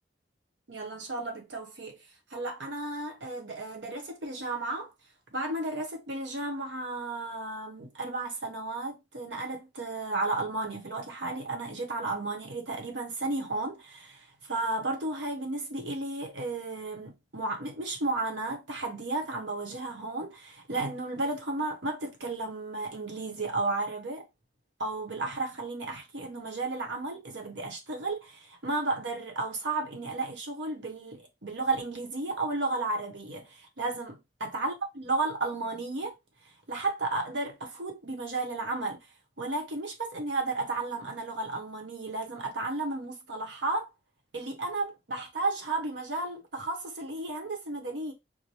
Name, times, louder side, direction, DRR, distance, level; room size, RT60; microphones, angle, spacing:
voice 1, 0.7-2.0 2.3-4.9 5.3-24.3 24.8-36.1 36.7-39.0 39.4-43.9 44.3-48.1, right 2 dB, 85° right, 1.0 m, -33 dB
4.6 x 2.1 x 2.8 m
head